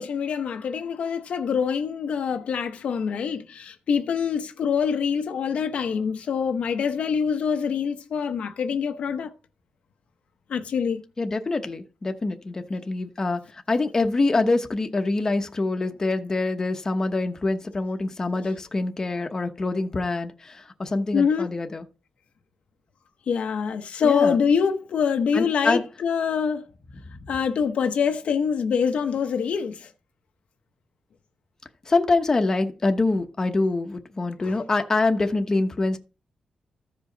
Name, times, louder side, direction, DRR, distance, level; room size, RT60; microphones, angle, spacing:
voice 1, 0.0-9.3 10.5-11.0 18.3-18.5 21.1-21.5 23.3-26.7 27.3-29.9 34.4-34.6, left 6 dB, 70° left, 0.8 m, -25 dB
voice 2, 11.2-13.4 13.7-21.8 24.0-24.4 25.3-25.8 31.9-36.0, left 3 dB, 25° left, 0.9 m, -25 dB
14.5 x 5.1 x 3.9 m
wide cardioid pair, 155°, 2 cm